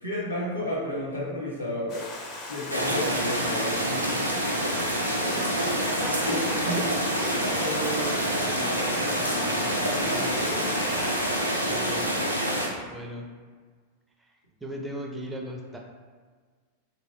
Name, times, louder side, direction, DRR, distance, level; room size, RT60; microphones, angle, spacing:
voice 1, 0.0-2.0 2.5-4.2 6.3-6.8 9.3-9.6 9.9-10.9, left 1 dB, 90° left, -6 dB, 0.8 m, -32 dB
Stream, 1.9-11.4, left 2 dB, 40° left, 0.7 m, -38 dB
sound 1, 2.7-12.7, equal, 90° right, 0.4 m, -27 dB
voice 2, 5.3-5.7 6.0-6.9 7.2-9.1 11.7-12.1 12.9-13.3 14.2-14.3 14.6-15.8, right 1 dB, 5° right, 0 dB, 0.4 m, -37 dB
2.9 x 2.8 x 2.6 m, 1.5 s
figure-of-eight pair, 90°, 0 cm